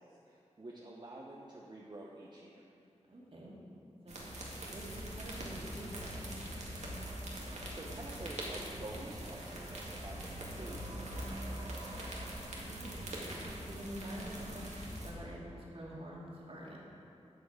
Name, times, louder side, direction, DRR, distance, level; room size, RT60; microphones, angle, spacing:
voice 1, 0.0-2.6 7.7-11.9, right 2 dB, 40° right, -3 dB, 1.0 m, -49 dB
voice 2, 3.1-3.5 4.0-4.2 4.7-6.4 12.6-13.0 13.7-14.6 15.0-16.9, equal, 55° right, -5 dB, 2.4 m, -47 dB
sound 1, 4.1-15.1, right 1 dB, 75° right, 1.9 m, -42 dB
13.0 x 7.0 x 4.9 m, 2.7 s
wide cardioid pair, 85°, 12 cm